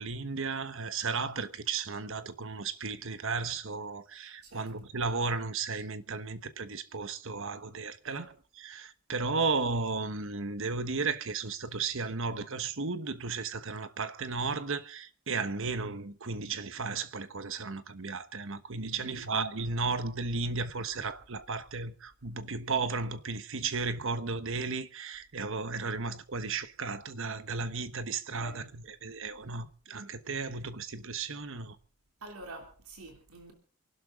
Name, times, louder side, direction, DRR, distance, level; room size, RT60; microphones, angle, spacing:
voice 1, 0.0-8.3 8.6-31.8, right 4 dB, 65° right, 1.2 m, -34 dB
voice 2, 4.4-4.7 8.0-8.3 19.0-19.3 28.4-28.6 32.2-33.5, right 2 dB, 80° right, 3.1 m, -47 dB
27.5 x 12.0 x 3.7 m
head